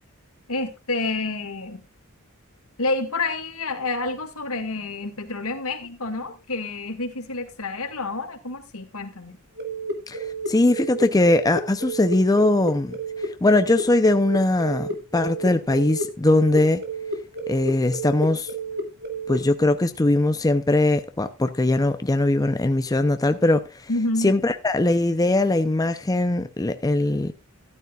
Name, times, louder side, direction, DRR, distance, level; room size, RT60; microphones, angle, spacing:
voice 1, 0.5-1.8 2.8-9.4 23.9-24.3, left 2 dB, 75° left, 1.9 m, -28 dB
sound 1, 9.6-19.4, right 2 dB, 50° right, 2.1 m, -31 dB
voice 2, 10.1-16.8 17.5-18.5 19.3-23.9 24.2-27.3, left 2 dB, 15° left, 0.5 m, -21 dB
13.0 x 12.0 x 2.3 m
head